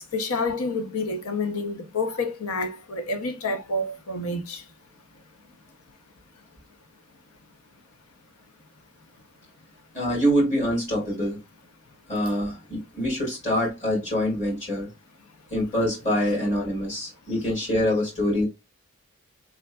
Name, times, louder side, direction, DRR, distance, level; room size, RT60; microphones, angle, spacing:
voice 1, 0.0-4.7, left 2 dB, 75° left, 0.7 m, -29 dB
voice 2, 9.9-11.4 12.1-14.9 15.5-18.5, equal, 30° left, 1.8 m, -25 dB
3.7 x 3.5 x 2.2 m
head